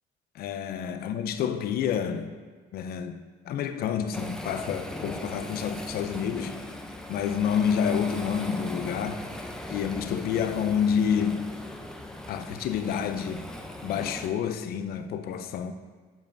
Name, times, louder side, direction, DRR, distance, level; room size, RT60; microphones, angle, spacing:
voice 1, 0.3-2.4 2.7-6.6 7.1-9.3 9.7-11.6 12.3-13.5 13.8-15.7, left 7 dB, 65° left, 0.5 m, -29 dB
Waves surf, 4.1-14.3, left 1 dB, 5° left, 0.6 m, -39 dB
11.5 x 5.3 x 2.6 m
cardioid pair, 110°, 17 cm